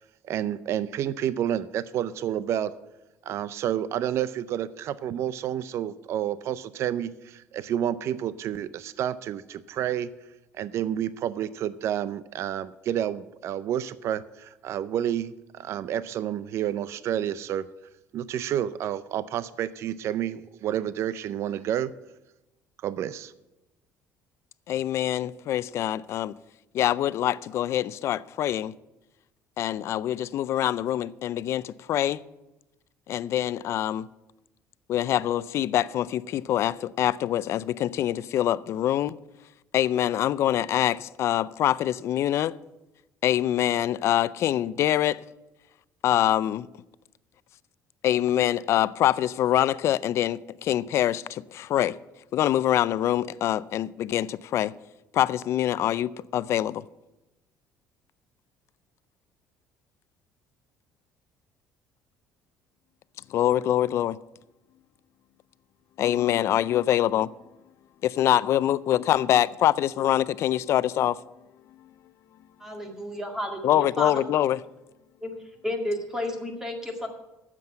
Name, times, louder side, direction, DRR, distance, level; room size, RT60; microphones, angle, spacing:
voice 1, 0.2-2.7 3.3-10.1 10.5-17.6 18.1-21.9 22.8-23.3, right 10 dB, 55° right, 0.4 m, -29 dB
voice 2, 24.7-26.3 26.7-28.7 29.6-32.2 33.1-34.1 34.9-39.2 39.7-42.5 43.2-45.2 46.0-46.7 48.0-52.0 52.3-54.7 55.1-56.8 63.3-64.2 66.0-67.3 68.0-71.2 73.6-74.6, left 12 dB, 55° left, 0.4 m, -24 dB
voice 3, 72.6-74.2 75.2-75.3 75.6-77.1, left 1 dB, 10° right, 2.0 m, -32 dB
9.5 x 7.6 x 8.7 m
cardioid pair, 125°, 6 cm